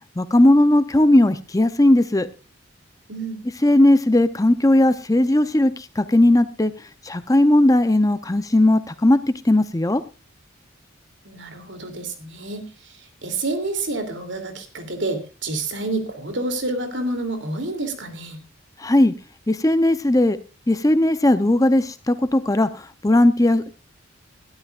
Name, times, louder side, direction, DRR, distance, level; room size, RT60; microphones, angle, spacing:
voice 1, 0.2-2.3 3.6-6.7 7.0-10.0 18.8-19.1 19.5-20.4 20.7-23.7, left 1 dB, 15° left, 11 dB, 0.6 m, -17 dB
voice 2, 3.1-3.4 11.2-18.4, right 2 dB, 65° right, 6 dB, 2.9 m, -29 dB
21.0 x 13.0 x 2.4 m, 0.30 s
head